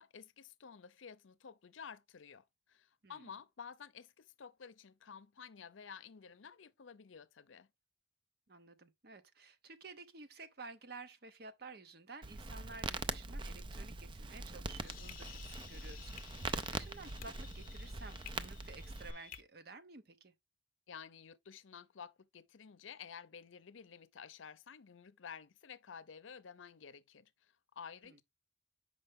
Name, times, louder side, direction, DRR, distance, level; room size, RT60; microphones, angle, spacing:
voice 1, 0.0-7.7 20.9-28.2, left 6 dB, 85° left, 0.6 m, -52 dB
voice 2, 8.5-20.3 28.0-28.2, right 3 dB, 55° right, 0.8 m, -53 dB
Crackle, 12.2-19.1, right 3 dB, 25° right, 0.4 m, -42 dB
sound 1, 14.8-19.4, left 9 dB, 45° left, 0.7 m, -54 dB
6.6 x 5.1 x 3.5 m
head